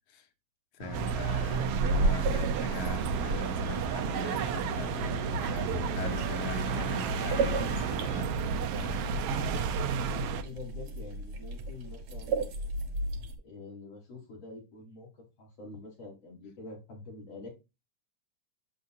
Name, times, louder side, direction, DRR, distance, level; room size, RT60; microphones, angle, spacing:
voice 1, 0.7-8.3 8.7-9.6, left 6 dB, 80° left, 2.3 m, -42 dB
sound 1, 0.8-8.2, right 4 dB, 50° right, 3.5 m, -40 dB
sound 2, 0.9-10.4, right 6 dB, 85° right, 1.3 m, -31 dB
sound 3, 2.2-13.4, right 2 dB, 65° right, 2.3 m, -36 dB
voice 2, 10.4-12.7 13.4-17.5, left 3 dB, 50° left, 5.0 m, -46 dB
8.5 x 6.6 x 2.6 m
omnidirectional pair, 3.5 m